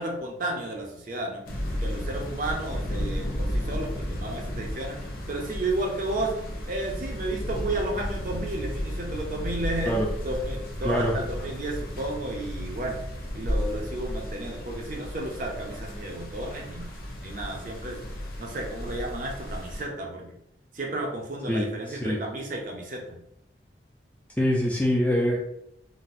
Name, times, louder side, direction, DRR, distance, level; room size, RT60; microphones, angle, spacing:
voice 1, 0.0-1.4 1.8-6.3 6.7-13.0 13.3-16.9 17.2-18.0 18.4-20.3 20.7-23.2, right 2 dB, 45° right, 0 dB, 0.5 m, -32 dB
sound 1, 1.5-19.8, equal, 50° left, 0.6 m, -33 dB
voice 2, 10.8-11.1 21.5-22.2 24.4-25.4, equal, 10° left, -2 dB, 0.4 m, -24 dB
4.0 x 2.1 x 2.5 m, 0.78 s
head